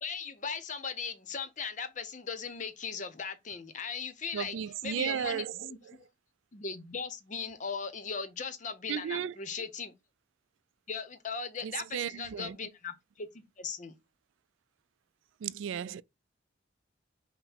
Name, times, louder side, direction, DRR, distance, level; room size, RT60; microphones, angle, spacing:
voice 1, 0.0-4.5 4.8-6.0 6.5-9.9 10.9-13.9, left 5 dB, 40° left, 0.7 m, -38 dB
voice 2, 4.3-6.0 8.9-9.3 11.6-12.6 15.4-16.0, right 9 dB, 80° right, 0.3 m, -35 dB
5.7 x 2.1 x 4.0 m
head